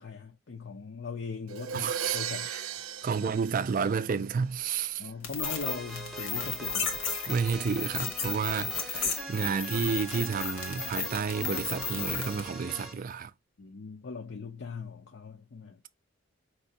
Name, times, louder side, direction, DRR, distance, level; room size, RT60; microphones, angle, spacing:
voice 1, 0.0-2.5 5.0-6.9 13.6-15.8, left 4 dB, 55° left, 0.6 m, -40 dB
Crash cymbal, 1.5-4.4, right 8 dB, 90° right, 0.6 m, -37 dB
voice 2, 1.7-2.2 2.5-2.6 3.0-5.1 7.3-13.3, right 6 dB, 40° right, 0.3 m, -31 dB
sound 1, 5.2-12.5, left 5 dB, 75° left, 1.2 m, -34 dB
sound 2, 5.4-13.0, right 1 dB, ahead, 0.8 m, -42 dB
5.3 x 3.0 x 2.8 m
head